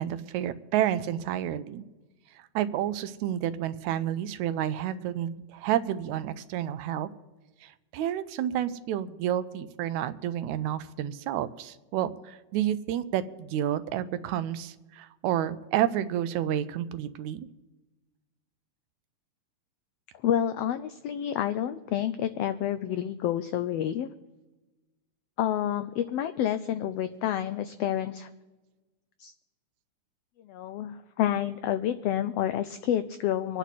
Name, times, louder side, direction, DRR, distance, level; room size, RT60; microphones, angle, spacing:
voice 1, 0.0-1.8 2.6-7.1 7.6-17.5, right 11 dB, 80° right, 13 dB, 2.0 m, -30 dB
voice 2, 20.2-24.1 25.4-28.3 29.2-29.3 30.5-33.6, left 11 dB, 90° left, 11 dB, 1.4 m, -29 dB
25.5 x 9.3 x 4.2 m, 1.1 s
omnidirectional pair, 3.4 m